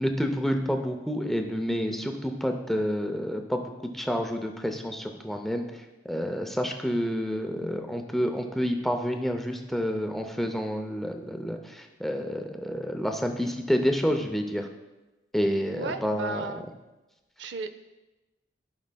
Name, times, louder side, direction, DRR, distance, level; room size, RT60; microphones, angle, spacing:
voice 1, 0.0-5.7 6.0-14.7 15.3-16.4, equal, ahead, 4 dB, 0.5 m, -29 dB
voice 2, 15.8-16.6 17.4-17.7, right 3 dB, 70° right, 10 dB, 0.5 m, -34 dB
15.0 x 5.3 x 2.3 m, 1.1 s
head